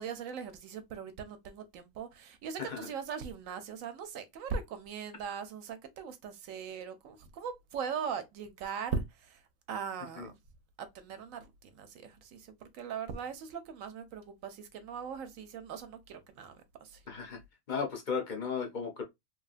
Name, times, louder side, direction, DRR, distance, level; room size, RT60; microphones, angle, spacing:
voice 1, 0.0-10.4 10.8-17.0, right 6 dB, 75° right, 0.9 m, -40 dB
voice 2, 17.1-17.4 17.7-19.0, left 5 dB, 50° left, 0.6 m, -35 dB
3.1 x 2.3 x 2.4 m
omnidirectional pair, 1.5 m